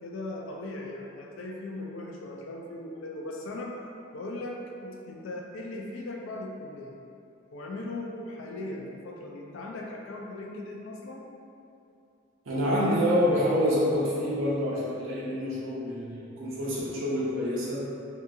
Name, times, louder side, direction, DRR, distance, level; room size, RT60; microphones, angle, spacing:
voice 1, 0.0-3.8 4.1-6.9 7.5-11.2, left 2 dB, 80° left, 0 dB, 0.4 m, -38 dB
voice 2, 12.5-17.8, equal, 90° right, -6 dB, 0.5 m, -27 dB
2.7 x 2.6 x 2.3 m, 2.6 s
head